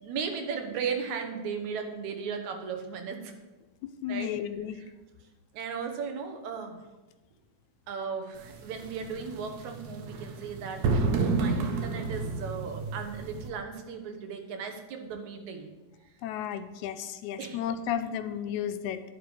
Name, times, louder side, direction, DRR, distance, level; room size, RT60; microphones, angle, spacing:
voice 1, 0.0-3.3 4.1-4.3 5.5-6.8 7.9-15.7 17.4-17.6 18.0-18.1, right 6 dB, 70° right, 5 dB, 2.5 m, -36 dB
voice 2, 3.8-4.8 16.2-19.0, left 10 dB, 85° left, 10 dB, 2.0 m, -33 dB
sound 1, 8.4-13.5, right 3 dB, 90° right, 2.9 m, -31 dB
10.5 x 10.5 x 4.9 m, 1.2 s
omnidirectional pair, 3.5 m